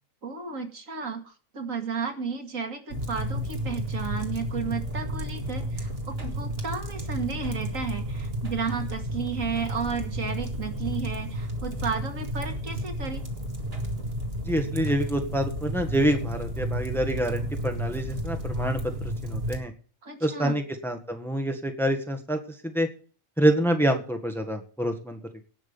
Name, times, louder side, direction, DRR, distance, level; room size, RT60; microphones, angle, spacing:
voice 1, 0.2-13.2 20.0-20.6, right 5 dB, 75° right, 5 dB, 2.5 m, -33 dB
sound 1, 2.9-19.6, equal, 45° right, 2.2 m, -32 dB
voice 2, 14.4-18.8 19.2-19.7 20.2-22.9 23.4-25.4, right 1 dB, ahead, 6 dB, 1.6 m, -27 dB
18.0 x 6.2 x 7.0 m, 0.40 s
omnidirectional pair, 1.4 m